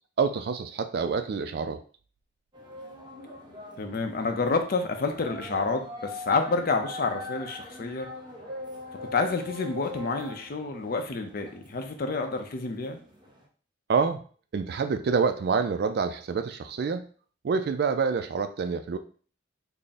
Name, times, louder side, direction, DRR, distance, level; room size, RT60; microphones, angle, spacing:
voice 1, 0.2-1.8 13.9-14.2 14.5-17.1 17.4-19.0, right 5 dB, 55° right, 8 dB, 0.3 m, -27 dB
sound 1, 2.5-13.4, left 2 dB, 25° right, 0.7 m, -42 dB
voice 2, 3.8-8.1 9.1-13.0, left 3 dB, 50° left, 5 dB, 0.5 m, -29 dB
3.5 x 2.0 x 4.1 m, 0.42 s
head